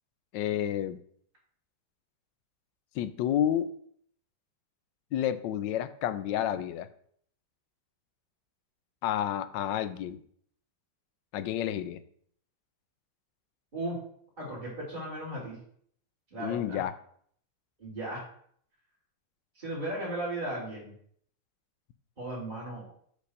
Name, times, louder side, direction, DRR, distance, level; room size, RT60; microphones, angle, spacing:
voice 1, 0.3-1.0 2.9-3.7 5.1-6.9 9.0-10.2 11.3-12.0 16.4-16.9, left 10 dB, 85° left, 13 dB, 1.3 m, -30 dB
voice 2, 14.4-15.6 16.3-16.8 17.8-18.2 19.5-20.9 22.2-22.8, right 1 dB, 25° right, -8 dB, 3.3 m, -36 dB
6.5 x 5.4 x 6.4 m, 0.63 s
omnidirectional pair, 1.9 m